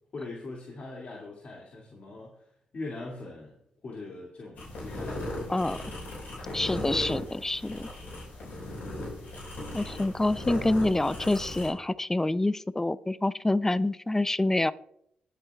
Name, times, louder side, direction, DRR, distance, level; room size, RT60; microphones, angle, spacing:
voice 1, 0.1-2.3 2.7-3.5 3.8-5.6, left 3 dB, 55° left, -4 dB, 2.4 m, -41 dB
sound 1, 4.6-11.7, left 1 dB, 70° left, 5.1 m, -37 dB
voice 2, 6.5-7.9 9.7-14.7, left 2 dB, 15° left, 17 dB, 0.5 m, -27 dB
20.5 x 7.9 x 2.4 m, 0.73 s
supercardioid pair, 60°, 3 cm